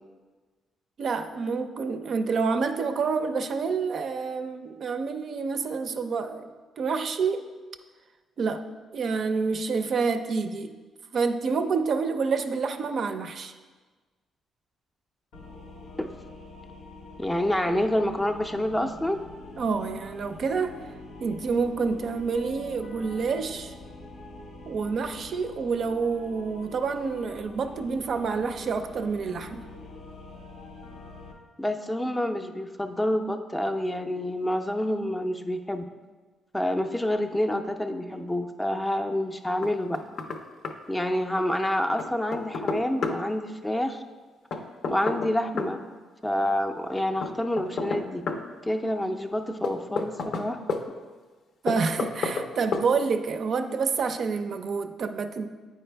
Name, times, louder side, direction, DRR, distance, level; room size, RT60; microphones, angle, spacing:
voice 1, 1.0-7.5 8.4-8.6 8.9-10.7 11.1-13.5 19.6-20.8 21.2-23.7 24.7-29.7 51.6-55.5, right 5 dB, 55° right, 8 dB, 0.4 m, -28 dB
sound 1, 15.3-31.3, left 2 dB, 90° left, 1.1 m, -45 dB
voice 2, 17.2-19.2 31.6-35.8 36.5-40.0 40.9-44.0 44.9-45.8 46.2-48.2 48.7-50.6, left 1 dB, 10° left, 5 dB, 0.4 m, -28 dB
Knock, 39.6-40.4 40.6-40.7 42.0-43.2 44.5-45.7 47.2-48.4 49.6-50.8 51.7-52.5 52.7-52.9, left 4 dB, 65° left, 0.6 m, -30 dB
8.6 x 4.6 x 3.3 m, 1.4 s
cardioid pair, 90°, 0 cm